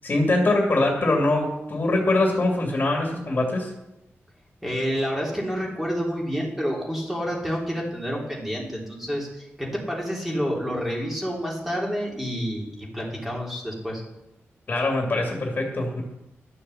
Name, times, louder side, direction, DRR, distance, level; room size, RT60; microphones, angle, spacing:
voice 1, 0.0-3.7 14.7-16.0, left 2 dB, 40° left, 0 dB, 2.5 m, -23 dB
voice 2, 4.6-14.0, equal, 5° right, -3 dB, 3.3 m, -29 dB
12.5 x 6.9 x 7.1 m, 0.90 s
wide cardioid pair, 140°, 5 cm